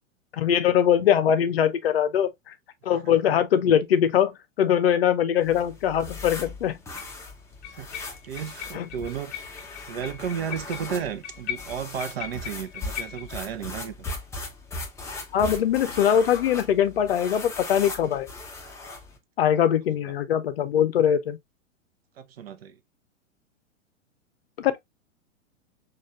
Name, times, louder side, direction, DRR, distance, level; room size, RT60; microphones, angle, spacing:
voice 1, 0.4-2.5 2.8-6.8 8.7-8.9 15.3-18.3 19.4-21.4 24.6-24.8, left 9 dB, 50° left, 0.6 m, -22 dB
sound 1, 4.8-4.9 7.0-7.2 7.6-13.4, left 10 dB, 30° left, 1.0 m, -39 dB
sound 2, 5.4-19.2, left 2 dB, 5° left, 0.6 m, -39 dB
voice 2, 7.8-9.3 9.9-13.9 22.2-22.8, right 7 dB, 50° right, 0.6 m, -33 dB
6.1 x 2.5 x 2.3 m
figure-of-eight pair, 105°, 39 cm